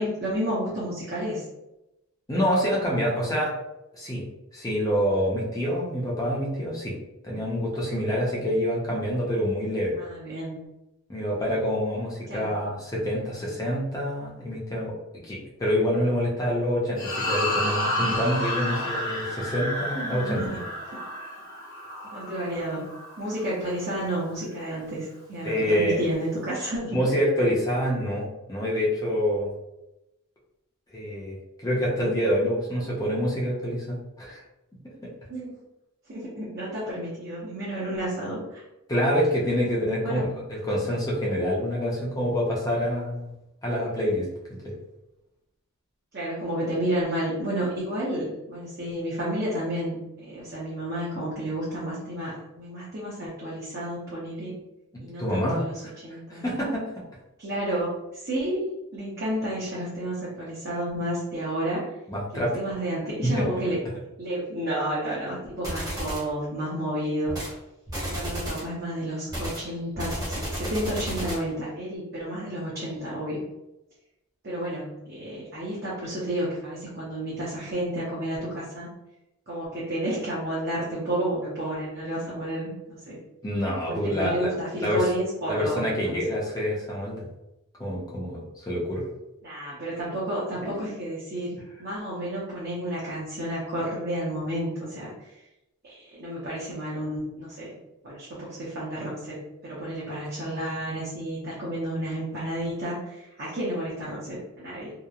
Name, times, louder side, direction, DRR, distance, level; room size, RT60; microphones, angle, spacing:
voice 1, 0.0-1.4 10.0-10.6 12.3-12.5 19.9-20.6 20.9-21.0 22.1-22.9 23.2-27.0 35.3-35.6 36.1-38.6 40.0-40.4 46.1-54.6 55.0-56.4 57.4-61.8 62.3-63.8 64.2-67.3 68.0-73.4 74.4-78.9 79.5-83.2 83.9-86.2 89.4-95.1 95.8-97.7 98.0-104.9, right 1 dB, 45° right, -8 dB, 0.7 m, -31 dB
voice 2, 2.3-3.5 3.9-4.2 4.5-7.0 7.2-10.0 11.1-14.9 15.2-20.5 25.4-26.0 26.9-29.5 30.9-31.4 31.6-34.4 35.0-35.1 38.9-40.2 40.5-43.3 43.6-44.3 44.6-44.7 55.2-55.9 56.3-56.8 62.1-62.6 63.2-63.4 65.7-65.8 83.4-84.5 84.8-85.0 85.5-87.2 87.8-89.1 90.6-90.7, equal, 15° left, -5 dB, 0.6 m, -26 dB
sound 1, 17.0-23.5, left 1 dB, 60° left, 1.2 m, -30 dB
sound 2, 65.6-66.3 67.3-67.6 67.9-68.7 69.3-71.5, equal, 15° right, 0.8 m, -32 dB
2.8 x 2.1 x 2.3 m, 0.93 s
head